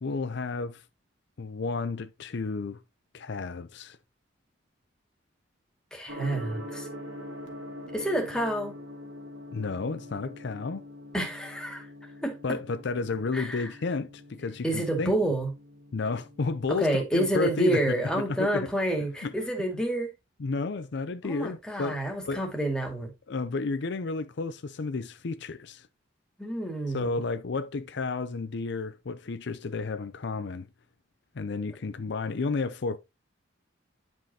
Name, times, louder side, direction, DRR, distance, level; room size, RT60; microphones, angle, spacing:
voice 1, 0.0-0.8 1.4-2.8 3.1-4.0 9.5-10.8 12.4-15.1 15.9-18.7 19.2-19.3 20.4-22.0 22.3-22.4 23.3-25.9 26.9-30.7 31.3-33.0, left 3 dB, 60° left, 0.5 m, -32 dB
voice 2, 5.9-6.9 7.9-8.8 11.1-12.4 13.3-13.7 14.6-15.5 16.7-20.1 21.2-23.1 26.4-27.2, right 1 dB, 5° left, 2.2 m, -29 dB
Gong, 6.1-16.9, left 1 dB, 80° right, 2.3 m, -44 dB
10.0 x 5.4 x 2.9 m
head